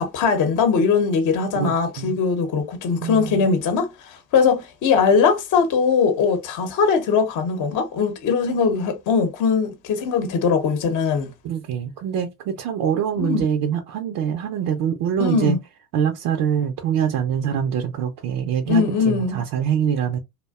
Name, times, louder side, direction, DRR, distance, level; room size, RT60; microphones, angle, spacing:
voice 1, 0.0-11.3 13.2-13.4 15.2-15.6 18.7-19.4, left 5 dB, 45° left, 0.8 m, -20 dB
voice 2, 3.0-3.4 11.4-15.6 15.9-20.2, right 8 dB, 50° right, 0.6 m, -24 dB
2.5 x 2.2 x 2.3 m
hypercardioid pair, 80°, 44 cm